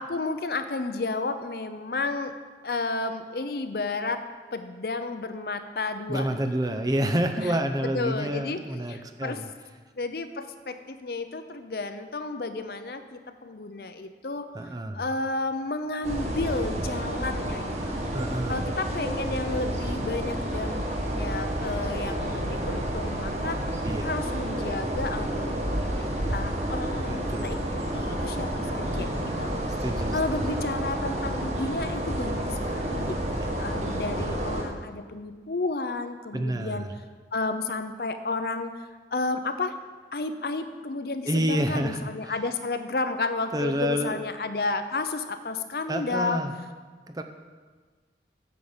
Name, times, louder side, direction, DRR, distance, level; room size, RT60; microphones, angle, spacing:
voice 1, 0.0-2.3 2.6-4.2 4.5-6.7 7.4-7.6 7.9-9.4 10.0-18.0 18.5-20.8 21.1-23.6 24.0-26.0 26.3-27.6 27.9-29.5 30.1-33.2 33.6-36.9 37.3-38.8 39.1-39.8 40.1-46.4, left 3 dB, 60° left, 9 dB, 0.7 m, -32 dB
voice 2, 6.1-9.5 14.5-15.0 18.1-18.7 23.8-24.1 27.1-27.6 29.8-30.4 33.4-33.5 36.3-36.9 41.3-42.1 43.5-44.2 45.9-46.5 47.1-47.2, right 1 dB, 20° right, 6 dB, 0.6 m, -28 dB
sound 1, 16.0-34.6, right 1 dB, 40° right, 1.4 m, -30 dB
9.5 x 6.5 x 7.2 m, 1.5 s
head